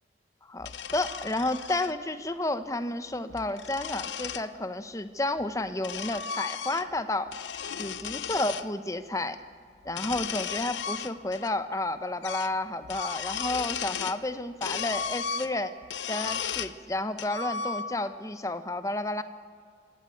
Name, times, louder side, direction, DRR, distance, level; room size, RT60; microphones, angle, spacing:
voice 1, 0.5-7.3 7.8-9.4 9.8-15.7 16.1-19.2, left 2 dB, 20° left, 10 dB, 0.9 m, -31 dB
sound 1, 0.6-1.9 3.1-4.5 5.4-7.0 7.3-8.7 9.8-11.5 11.8-11.9 12.2-12.6 12.8-14.2 14.6-16.8 17.2-18.1, left 7 dB, 90° left, 0.8 m, -35 dB
25.5 x 13.0 x 9.4 m, 2.2 s
head